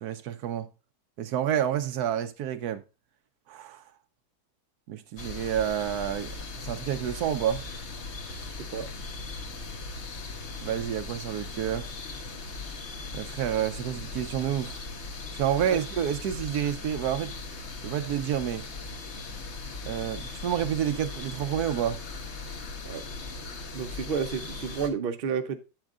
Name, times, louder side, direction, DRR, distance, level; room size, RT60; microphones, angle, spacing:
voice 1, 0.0-0.7 1.2-2.8 3.5-3.8 4.9-7.6 10.6-11.9 13.1-14.8 15.3-17.3 17.8-18.6 19.9-22.0, right 10 dB, 70° right, 1.1 m, -29 dB
sound 1, 5.2-24.9, left 3 dB, 45° left, 1.2 m, -39 dB
voice 2, 23.7-25.6, right 6 dB, 55° right, 0.6 m, -31 dB
8.9 x 7.5 x 2.4 m
omnidirectional pair, 1.9 m